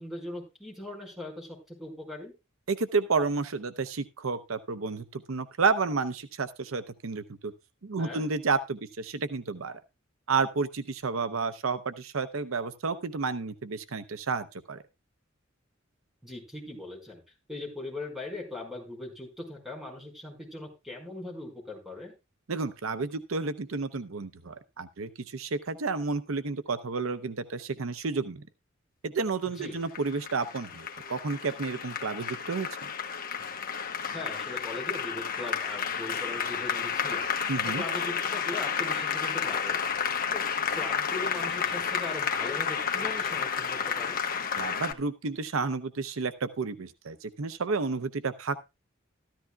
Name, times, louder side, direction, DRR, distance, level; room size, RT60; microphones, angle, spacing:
voice 1, 0.0-2.3 8.0-8.3 16.2-17.2 17.5-22.1 29.6-29.8 34.1-37.3 37.8-39.8 40.3-40.5 40.7-44.2, left 2 dB, ahead, 0 dB, 4.9 m, -40 dB
voice 2, 2.7-7.5 7.8-9.7 10.3-14.8 22.5-28.4 29.0-32.7 37.5-37.8 44.6-48.7, right 4 dB, 90° right, 12 dB, 0.7 m, -31 dB
Applause, 29.6-44.9, left 6 dB, 45° left, 1.1 m, -31 dB
14.0 x 13.0 x 2.3 m, 0.25 s
head